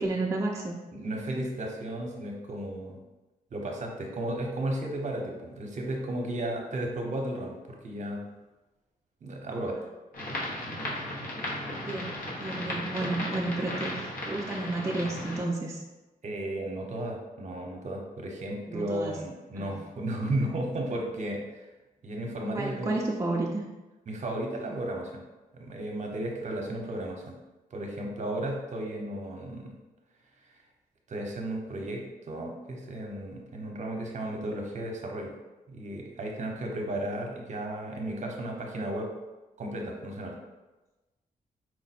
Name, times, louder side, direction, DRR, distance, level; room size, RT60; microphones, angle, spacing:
voice 1, 0.0-0.8 11.8-15.8 18.7-19.2 19.5-19.7 22.5-23.6, right 2 dB, 20° right, -2 dB, 0.4 m, -31 dB
voice 2, 0.9-3.0 3.5-7.6 7.8-8.2 9.2-9.8 16.2-21.4 22.0-23.0 24.1-25.2 25.5-27.4 27.7-29.7 31.1-35.3 35.7-39.1 39.6-40.4, right 1 dB, 50° right, 1 dB, 0.8 m, -34 dB
sound 1, 10.1-15.4, left 1 dB, 65° left, 1.0 m, -35 dB
4.6 x 2.1 x 4.1 m, 1.1 s
wide cardioid pair, 110°, 15 cm